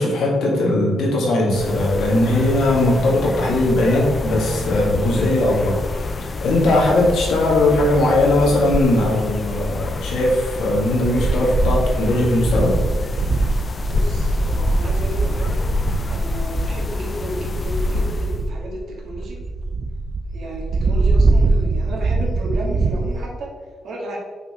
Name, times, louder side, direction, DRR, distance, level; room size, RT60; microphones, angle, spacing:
voice 1, 0.0-12.8, left 1 dB, 80° left, -3 dB, 1.9 m, -19 dB
sound 1, 1.5-18.5, left 2 dB, 30° left, 0.4 m, -27 dB
sound 2, 11.2-23.2, right 3 dB, 40° right, 0.4 m, -22 dB
voice 2, 13.8-15.6 16.1-19.4 20.3-23.5 23.8-24.2, equal, 60° right, -1 dB, 1.8 m, -33 dB
5.9 x 4.3 x 4.3 m, 1.5 s
cardioid pair, 125°, 0 cm